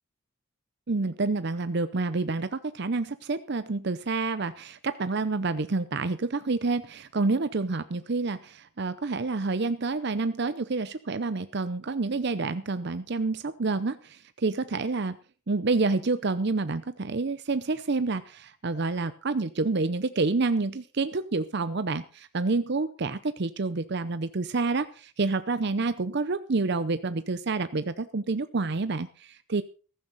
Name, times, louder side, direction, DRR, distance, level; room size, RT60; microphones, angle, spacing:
voice 1, 0.9-15.2 15.5-29.6, right 3 dB, 50° right, 12 dB, 0.6 m, -28 dB
15.0 x 14.5 x 4.1 m, 0.38 s
head